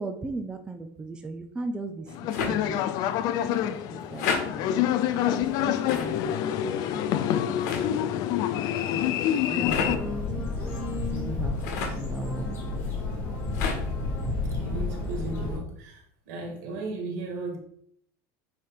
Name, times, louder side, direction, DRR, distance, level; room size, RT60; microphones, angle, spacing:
voice 1, 0.0-3.0 3.3-4.7 5.0-6.1 6.6-7.3 7.5-7.6 8.9-9.2 9.5-11.5 12.0-12.5, right 3 dB, 10° right, 5 dB, 0.5 m, -37 dB
sound 1, 2.1-10.0, left 11 dB, 45° left, 0.5 m, -27 dB
sound 2, 2.3-2.5 4.1-4.4 5.9-6.1 7.6-7.8 9.7-9.9 11.6-12.0 13.5-13.8, left 5 dB, 80° left, 2.1 m, -29 dB
sound 3, 9.6-15.6, left 3 dB, 30° left, 2.9 m, -31 dB
voice 2, 14.5-17.6, right 3 dB, 75° right, 1 dB, 2.5 m, -36 dB
8.4 x 3.4 x 4.4 m, 0.67 s
cardioid pair, 160°, 9 cm